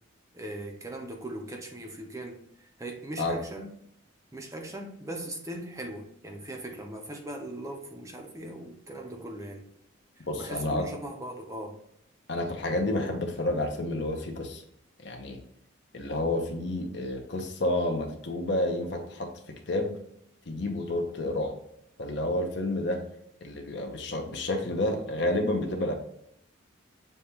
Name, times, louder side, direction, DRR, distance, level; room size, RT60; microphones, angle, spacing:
voice 1, 0.3-3.7 4.3-9.7 10.2-11.8, right 1 dB, 15° right, 2 dB, 0.5 m, -39 dB
voice 2, 10.3-10.8 12.3-14.6 15.0-15.4 15.9-20.0 20.5-21.6 22.0-23.0 23.4-25.9, left 1 dB, 55° left, 4 dB, 0.8 m, -30 dB
6.7 x 2.3 x 2.9 m, 0.74 s
head